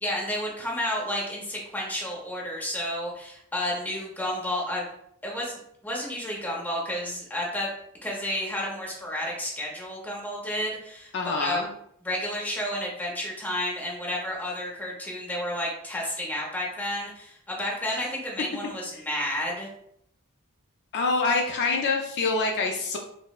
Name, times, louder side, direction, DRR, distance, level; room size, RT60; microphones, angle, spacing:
voice 1, 0.0-4.9 5.2-7.7 8.0-11.6 12.0-19.7, left 1 dB, 10° left, -3 dB, 0.8 m, -31 dB
voice 2, 11.1-11.7 17.9-18.0 20.9-23.0, left 3 dB, 50° left, 2 dB, 0.4 m, -26 dB
5.2 x 2.0 x 2.3 m, 0.71 s
head